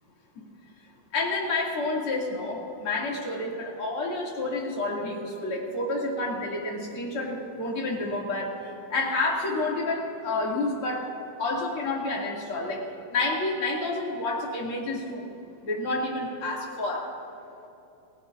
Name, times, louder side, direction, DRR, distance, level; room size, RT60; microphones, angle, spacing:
voice 1, 1.1-11.1 11.4-12.8 13.1-15.3 15.6-17.1, left 2 dB, 45° left, -3 dB, 3.1 m, -29 dB
29.5 x 17.0 x 2.6 m, 2.9 s
omnidirectional pair, 3.6 m